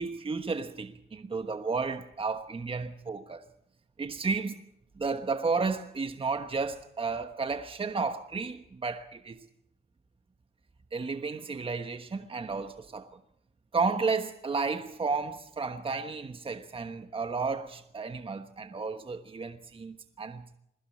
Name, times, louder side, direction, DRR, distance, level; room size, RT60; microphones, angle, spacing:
voice 1, 0.0-3.5 4.0-4.6 5.0-9.5 10.9-13.1 13.7-20.4, right 4 dB, 25° right, 1.2 m, -32 dB
21.5 x 15.5 x 8.8 m
cardioid pair, 90°, 20 cm